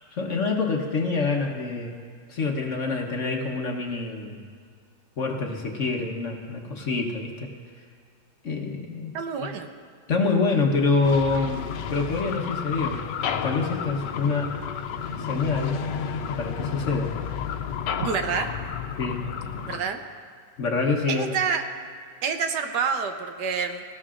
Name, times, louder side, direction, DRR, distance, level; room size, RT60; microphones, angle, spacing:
voice 1, 0.1-2.0 2.3-4.4 5.2-7.5 8.4-9.1 9.4-9.5 10.1-11.6 11.9-13.0 13.4-14.6 15.2-15.8 16.4-17.1 19.0-19.3 20.6-21.4, left 4 dB, 50° left, 1 dB, 1.3 m, -26 dB
voice 2, 9.1-9.7 18.0-18.5 19.7-20.0 21.1-21.6 22.2-23.8, right 6 dB, 75° right, 6 dB, 1.4 m, -27 dB
sound 1, 11.0-19.8, left 7 dB, 90° left, 1.3 m, -31 dB
19.0 x 15.5 x 2.5 m, 2.2 s
omnidirectional pair, 1.8 m